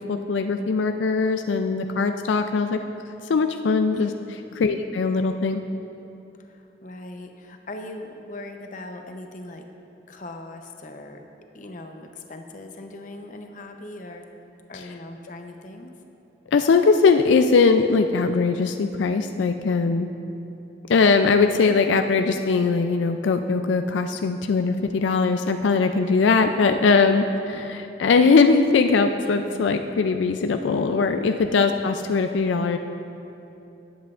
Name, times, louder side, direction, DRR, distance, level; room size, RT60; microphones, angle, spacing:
voice 1, 0.0-2.8 3.3-4.1 4.6-5.6 16.5-20.1 20.9-32.8, left 4 dB, 85° left, 7 dB, 0.4 m, -20 dB
voice 2, 6.4-9.7 10.1-11.2 11.5-14.2 14.7-15.9 27.4-27.6 29.2-29.6, left 2 dB, 45° left, 4 dB, 0.7 m, -40 dB
18.5 x 8.1 x 2.5 m, 2.8 s
head